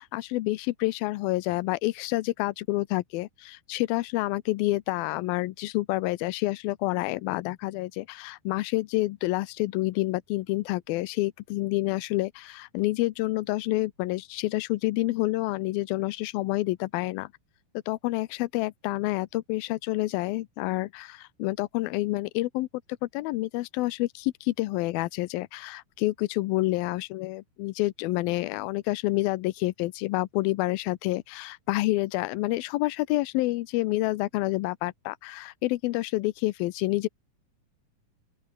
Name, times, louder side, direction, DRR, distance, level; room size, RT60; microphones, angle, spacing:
voice 1, 0.0-17.3 17.9-22.7 23.0-37.1, left 19 dB, 85° left, 2.6 m, -28 dB
open air
omnidirectional pair, 4.2 m